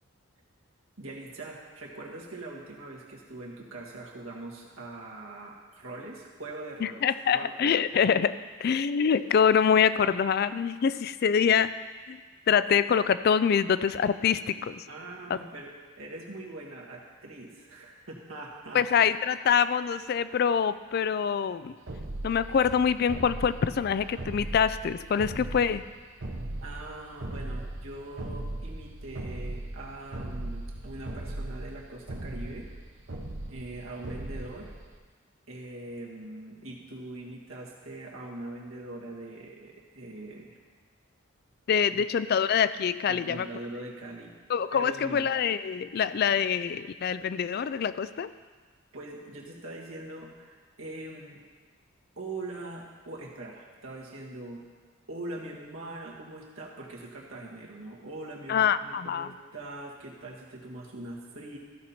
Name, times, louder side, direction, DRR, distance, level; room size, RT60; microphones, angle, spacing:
voice 1, 1.0-7.0 7.3-7.8 14.9-15.7 16.0-19.1 26.6-32.7 33.4-34.7 35.5-40.6 43.1-44.3 44.7-45.2 48.9-51.4 52.2-54.6 55.1-61.6, right 2 dB, 85° right, -2 dB, 1.7 m, -42 dB
voice 2, 6.8-8.3 8.6-11.7 12.1-12.2 12.5-14.8 15.3-15.4 18.7-21.7 22.2-25.8 41.7-43.5 44.5-48.3 58.5-59.3, left 7 dB, 50° left, 14 dB, 0.3 m, -25 dB
sound 1, 21.9-35.0, right 1 dB, 60° right, 1.0 m, -38 dB
14.5 x 5.6 x 4.4 m, 1.4 s
head